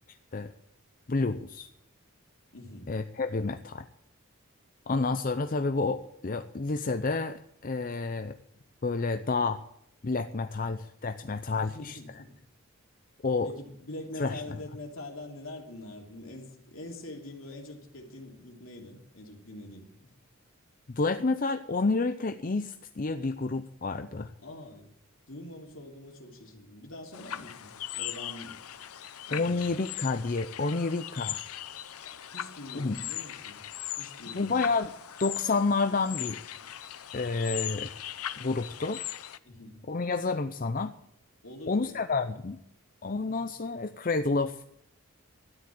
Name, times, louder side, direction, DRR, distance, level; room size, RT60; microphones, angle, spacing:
voice 1, 1.1-1.7 2.9-3.8 4.9-8.4 8.8-9.6 10.0-12.0 13.2-13.5 14.2-14.4 20.9-24.3 29.3-31.4 32.7-33.0 34.3-34.9 35.2-36.4 37.1-38.0 38.4-39.0 39.9-40.9 41.7-42.6 43.0-44.6, left 3 dB, 40° left, 9 dB, 0.6 m, -29 dB
voice 2, 2.5-2.9 11.6-12.4 13.4-20.1 24.4-24.9 25.3-28.6 29.3-29.8 32.0-33.6 34.0-34.6 39.4-39.8 41.4-42.1 43.1-43.4, left 1 dB, 65° left, 1 dB, 3.1 m, -44 dB
sound 1, 27.1-39.4, left 12 dB, 85° left, 0.7 m, -39 dB
13.0 x 10.5 x 8.8 m, 0.78 s
head